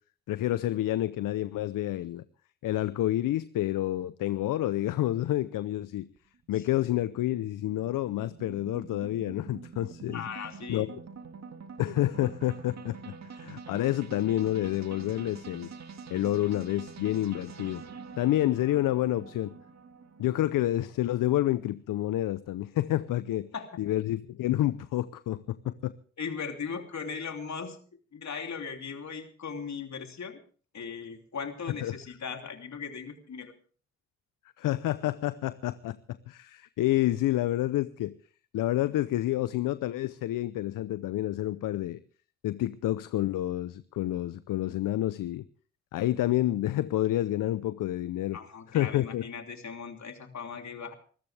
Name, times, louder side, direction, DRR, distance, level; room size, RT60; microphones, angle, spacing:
voice 1, 0.3-2.2 2.6-6.1 6.5-10.2 10.7-10.9 11.8-15.7 16.1-17.8 18.2-19.5 20.2-23.5 23.8-25.9 31.8-32.0 34.6-38.1 38.5-42.0 42.4-45.4 45.9-48.4 48.7-49.2, left 14 dB, 75° left, 15 dB, 0.7 m, -29 dB
sound 1, 6.2-20.4, right 5 dB, 55° right, 2.0 m, -46 dB
voice 2, 10.1-10.9 23.5-23.8 26.2-27.8 28.1-30.4 30.7-33.5 48.3-50.9, left 6 dB, 55° left, 5 dB, 3.0 m, -38 dB
24.0 x 14.0 x 3.4 m, 0.43 s
supercardioid pair, 45°, 33 cm